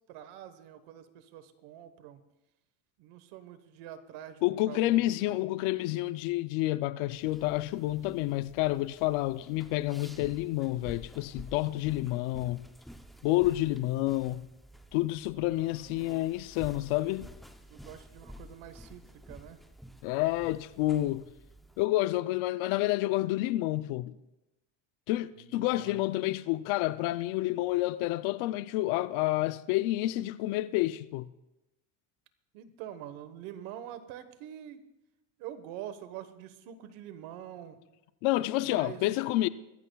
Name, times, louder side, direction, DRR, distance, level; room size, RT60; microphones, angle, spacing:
voice 1, 0.1-2.2 3.0-5.4 15.4-16.3 17.7-19.6 25.3-26.1 32.5-34.8 35.4-37.8 38.6-39.1, right 11 dB, 85° right, 1.3 m, -46 dB
voice 2, 4.4-12.7 13.2-14.5 14.9-17.3 20.0-21.2 21.8-24.2 25.1-31.3 38.2-39.5, left 17 dB, 80° left, 0.6 m, -29 dB
sound 1, 7.1-21.9, equal, ahead, 0.5 m, -51 dB
22.5 x 15.0 x 2.3 m
cardioid pair, 140°, 48 cm